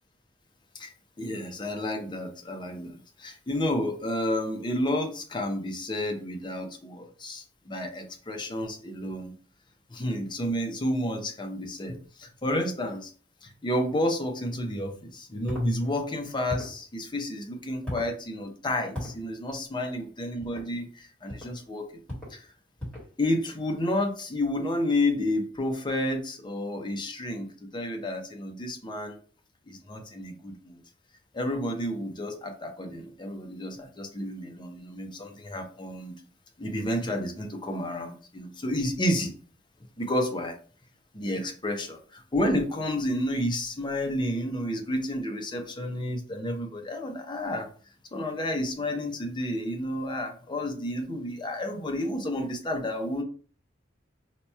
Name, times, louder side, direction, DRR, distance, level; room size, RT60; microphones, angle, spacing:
voice 1, 1.2-9.3 9.9-13.1 13.4-22.0 22.3-22.5 23.2-27.5 27.7-29.2 29.7-30.8 31.3-36.1 36.6-39.3 40.0-40.6 41.1-47.7 48.1-53.2, left 1 dB, 25° left, 3 dB, 0.6 m, -30 dB
sound 1, 15.5-15.7 16.5-16.8 17.9-18.1 18.9-19.2 20.4-20.7 21.3-21.5 22.1-22.4 22.8-23.1, left 1 dB, 5° left, 1.4 m, -36 dB
2.9 x 2.3 x 4.1 m, 0.42 s
head